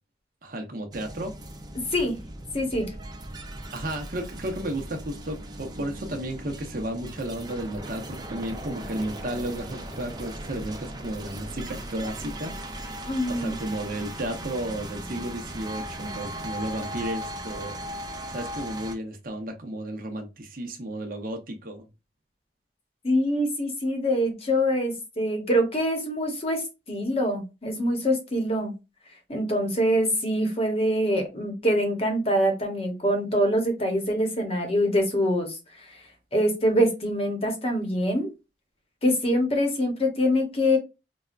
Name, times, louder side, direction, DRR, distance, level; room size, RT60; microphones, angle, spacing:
voice 1, 0.4-1.3 3.7-21.9, right 1 dB, 50° right, 0.8 m, -33 dB
sound 1, 0.9-18.9, right 1 dB, 25° right, 0.5 m, -38 dB
voice 2, 2.5-2.9 13.1-13.6 23.0-28.7 29.3-35.6 36.3-38.3 39.0-40.8, equal, 35° left, 0.9 m, -24 dB
5.1 x 2.2 x 2.4 m
head